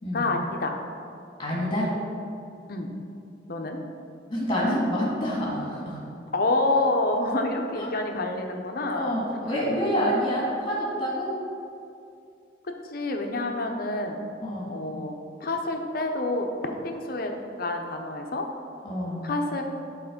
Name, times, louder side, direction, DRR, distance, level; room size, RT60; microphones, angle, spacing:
voice 1, 0.1-0.8 2.7-2.9 3.5-3.8 6.3-9.2 9.9-10.3 12.9-14.2 14.7-18.5 19.2-19.6, left 2 dB, 55° left, 3 dB, 0.7 m, -28 dB
voice 2, 1.4-1.9 4.3-6.0 7.8-7.9 8.9-11.3 14.4-14.8 18.8-19.3, equal, 25° left, -4 dB, 1.9 m, -27 dB
8.5 x 4.2 x 5.2 m, 2.5 s
head